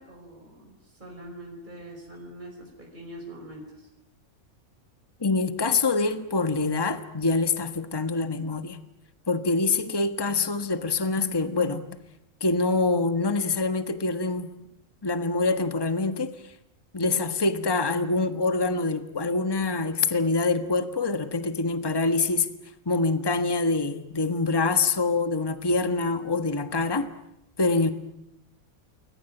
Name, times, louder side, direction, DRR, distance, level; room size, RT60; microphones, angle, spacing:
voice 1, 0.0-3.9, right 1 dB, 30° right, 0 dB, 5.5 m, -43 dB
voice 2, 5.2-8.8 9.3-11.8 12.4-14.5 15.0-16.3 16.9-22.5 22.8-27.1 27.6-27.9, left 3 dB, 15° left, 10 dB, 1.5 m, -25 dB
29.0 x 22.0 x 9.1 m, 0.84 s
omnidirectional pair, 1.5 m